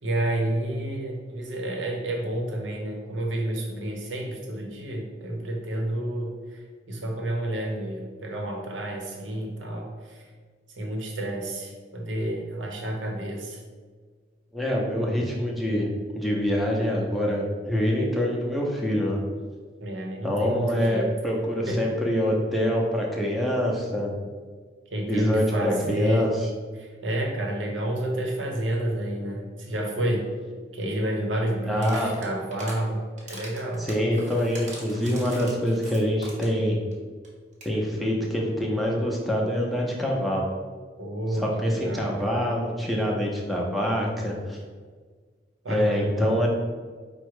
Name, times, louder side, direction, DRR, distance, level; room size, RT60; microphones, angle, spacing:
voice 1, 0.0-6.6 6.9-10.3 10.8-13.6 19.8-21.1 21.7-22.0 24.9-26.4 26.8-30.3 30.7-33.9 41.0-42.2 45.6-46.4, right 1 dB, 90° right, 1 dB, 0.9 m, -30 dB
voice 2, 14.5-15.9 16.1-19.2 20.2-24.1 25.1-26.3 31.7-32.1 33.8-36.8 37.6-40.5 41.3-44.6 45.7-46.5, equal, ahead, -2 dB, 0.6 m, -25 dB
sound 1, 31.7-32.8 33.2-36.6 36.9-37.0 37.2-37.3 37.5-37.8, right 2 dB, 40° right, 1.0 m, -42 dB
4.9 x 2.1 x 4.7 m, 1.5 s
head